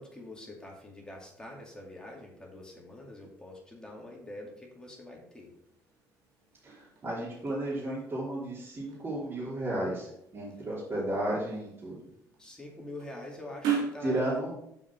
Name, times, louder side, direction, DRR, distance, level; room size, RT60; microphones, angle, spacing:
voice 1, 0.0-5.5 12.4-14.4, left 1 dB, 10° left, -1 dB, 2.3 m, -45 dB
sound 1, 5.3-14.1, right 7 dB, 80° right, 2.1 m, -40 dB
voice 2, 7.0-12.0 14.0-14.5, right 1 dB, 35° right, -8 dB, 3.1 m, -33 dB
7.2 x 4.9 x 5.9 m, 0.76 s
cardioid pair, 85°, 7 cm